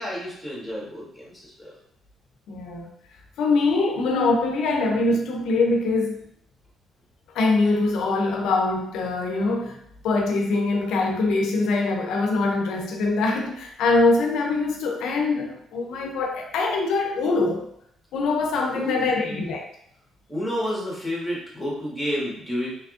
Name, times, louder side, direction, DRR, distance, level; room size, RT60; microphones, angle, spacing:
voice 1, 0.0-1.7 18.7-19.4 20.3-22.7, equal, 5° left, -5 dB, 1.4 m, -30 dB
voice 2, 2.5-2.9 3.4-6.2 7.3-17.7 18.1-19.7, left 3 dB, 80° left, 2 dB, 0.5 m, -23 dB
3.4 x 3.0 x 2.4 m, 0.69 s
cardioid pair, 110°, 0 cm